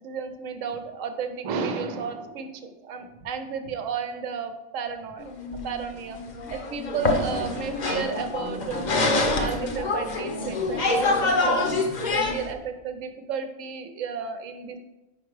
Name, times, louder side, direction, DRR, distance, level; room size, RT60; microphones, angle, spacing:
voice 1, 0.0-5.2 5.6-6.2 6.5-14.8, right 6 dB, 85° right, 8 dB, 1.1 m, -33 dB
sound 1, 5.2-12.5, left 2 dB, 45° left, 0.7 m, -26 dB
5.5 x 4.7 x 4.6 m, 1.1 s
omnidirectional pair, 1.3 m